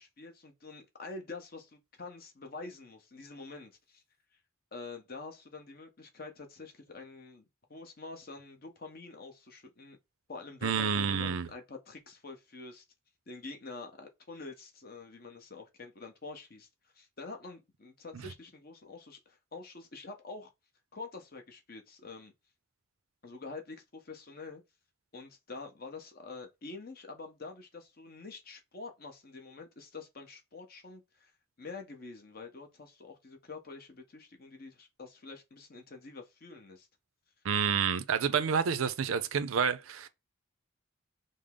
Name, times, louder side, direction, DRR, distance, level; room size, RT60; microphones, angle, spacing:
voice 1, 0.0-4.0 4.7-10.0 10.3-12.8 13.3-16.7 16.9-20.5 20.9-22.3 23.2-24.6 25.1-31.3 31.6-36.9, left 3 dB, 45° left, 0.8 m, -46 dB
voice 2, 10.6-11.5 18.1-18.2 37.4-40.1, right 6 dB, 90° right, 0.5 m, -29 dB
5.1 x 2.0 x 3.6 m
head